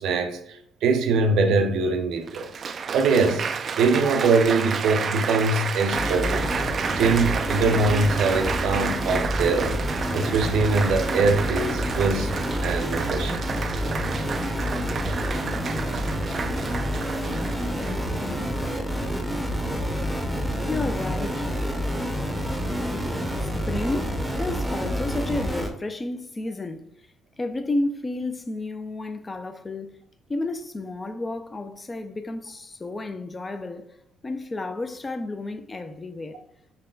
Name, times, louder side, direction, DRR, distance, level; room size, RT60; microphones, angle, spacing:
voice 1, 0.0-2.5 2.9-3.4 3.8-6.4 7.0-9.7 10.1-12.3 12.6-13.4, right 4 dB, 75° right, 0.6 m, -22 dB
Applause, 1.5-1.6 2.3-18.2 18.9-19.3, right 6 dB, 45° right, 0.3 m, -31 dB
sound 1, 5.9-25.7, equal, 5° right, 0.7 m, -28 dB
voice 2, 20.7-21.5 23.4-30.0 30.3-34.0 34.2-36.4, left 2 dB, 20° left, 0.4 m, -31 dB
5.7 x 2.2 x 3.7 m
cardioid pair, 105°, 0 cm